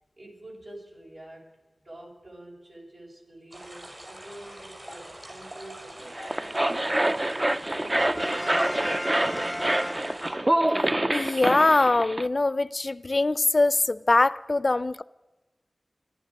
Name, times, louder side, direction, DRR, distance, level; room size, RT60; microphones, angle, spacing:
voice 1, 0.2-1.5 1.8-9.7, right 1 dB, 75° right, 6.3 m, -47 dB
sound 1, 3.5-10.3, right 1 dB, 55° right, 5.8 m, -44 dB
sound 2, 6.1-12.3, right 1 dB, 30° right, 0.4 m, -26 dB
Brass instrument, 7.9-10.6, equal, 5° right, 0.7 m, -35 dB
voice 2, 11.1-15.0, left 2 dB, 55° left, 0.4 m, -23 dB
25.0 x 10.0 x 5.3 m
cardioid pair, 40°, 0 cm